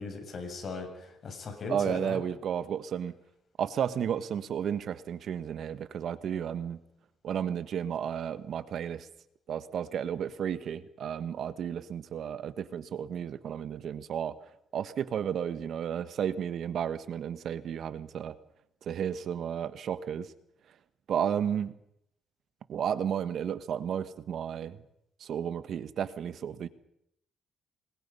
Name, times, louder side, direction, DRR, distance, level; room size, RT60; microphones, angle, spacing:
voice 1, 0.0-2.2, left 4 dB, 50° left, 5 dB, 7.4 m, -38 dB
voice 2, 1.7-3.1 3.6-6.8 7.2-9.1 9.5-14.4 14.7-18.4 18.8-20.3 21.1-21.8 22.7-24.8 25.2-26.7, right 8 dB, 65° right, 13 dB, 1.4 m, -33 dB
28.5 x 22.0 x 5.6 m, 0.77 s
cardioid pair, 90°, 0 cm